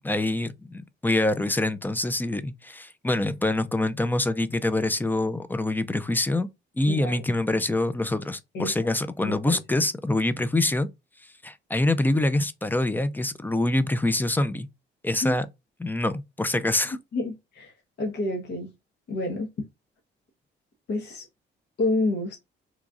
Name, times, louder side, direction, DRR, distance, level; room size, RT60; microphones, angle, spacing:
voice 1, 0.0-6.5 6.8-10.9 11.4-14.7 15.0-15.5 15.8-17.0, left 2 dB, 10° left, 0.4 m, -25 dB
voice 2, 6.9-7.2 8.5-8.7 9.2-9.6 15.2-15.4 17.1-18.7 19.1-19.5 20.9-21.3 21.8-22.4, left 2 dB, 60° left, 1.1 m, -29 dB
3.0 x 2.4 x 3.5 m
cardioid pair, 90°, 20 cm